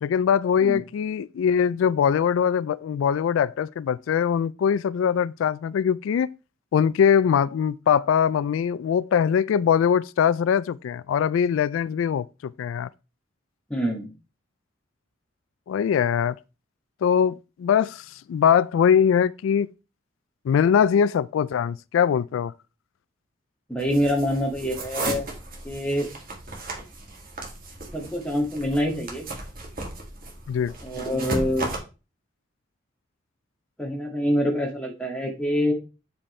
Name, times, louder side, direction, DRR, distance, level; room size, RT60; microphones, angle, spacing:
voice 1, 0.0-6.3 6.7-12.9 15.7-16.4 17.0-19.7 20.4-22.5 30.5-30.7, left 7 dB, 90° left, 0.3 m, -22 dB
voice 2, 13.7-14.1 23.7-25.2 25.6-26.1 27.9-29.3 30.8-31.7 33.8-35.7, equal, 5° left, 1.9 m, -25 dB
sound 1, 23.8-31.8, right 2 dB, 45° right, 2.1 m, -35 dB
7.6 x 7.1 x 3.2 m
head